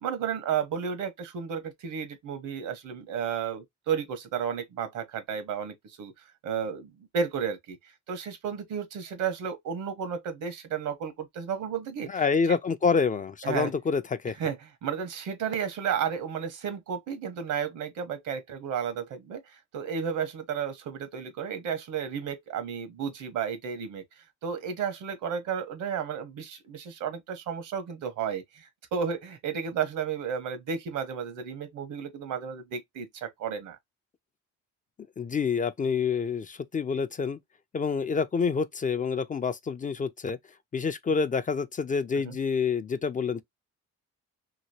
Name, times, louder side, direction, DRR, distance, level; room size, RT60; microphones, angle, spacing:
voice 1, 0.0-6.1 6.4-7.8 8.1-12.1 12.5-12.6 13.4-13.7 14.3-33.8 42.1-42.4, right 7 dB, 80° right, 1.1 m, -33 dB
voice 2, 12.1-14.4 35.2-37.4 37.7-40.4 40.7-43.4, left 5 dB, 25° left, 0.4 m, -27 dB
3.0 x 2.8 x 2.6 m
cardioid pair, 90°, 30 cm